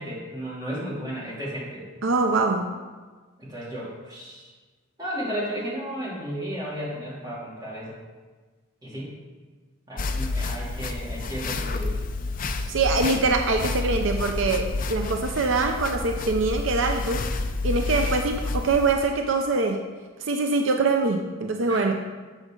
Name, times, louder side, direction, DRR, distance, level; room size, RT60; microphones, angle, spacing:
voice 1, 0.0-1.9 3.4-4.5 5.0-8.0 8.8-9.1 9.9-12.0 21.7-21.9, equal, 20° right, -7 dB, 2.9 m, -33 dB
voice 2, 2.0-2.7 12.7-17.2 17.6-19.8 20.2-21.9, right 3 dB, 70° right, 4 dB, 0.6 m, -24 dB
sound 1, 10.0-18.9, left 3 dB, 40° left, 0.6 m, -29 dB
11.5 x 7.5 x 3.8 m, 1.4 s
head